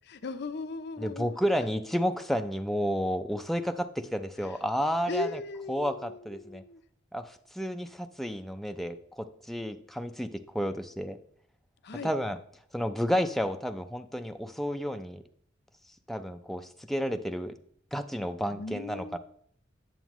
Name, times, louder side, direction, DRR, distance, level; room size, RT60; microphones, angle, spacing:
voice 1, 0.0-1.7 4.4-4.6 5.1-6.8 11.8-12.1 18.5-19.2, left 3 dB, 60° left, 10 dB, 0.6 m, -38 dB
voice 2, 1.0-5.3 5.7-6.6 7.1-11.2 12.0-12.4 12.7-15.2 16.1-17.5 17.9-19.2, equal, ahead, 7 dB, 0.4 m, -31 dB
9.1 x 7.2 x 3.0 m, 0.65 s
head